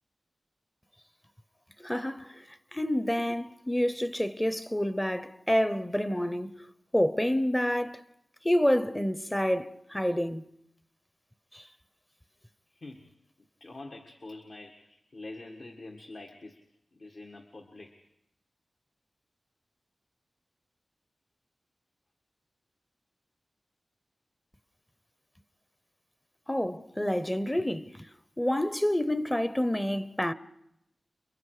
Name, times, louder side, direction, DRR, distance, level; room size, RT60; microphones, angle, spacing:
voice 1, 1.8-2.3 2.7-6.5 6.9-8.0 8.4-10.4 26.5-27.9 28.4-30.3, equal, 10° left, 0.8 m, -28 dB
voice 2, 12.7-13.1 13.6-16.6 16.9-18.0, left 2 dB, 55° left, 1.8 m, -45 dB
29.0 x 22.5 x 5.0 m
wide cardioid pair, 80°, 0 cm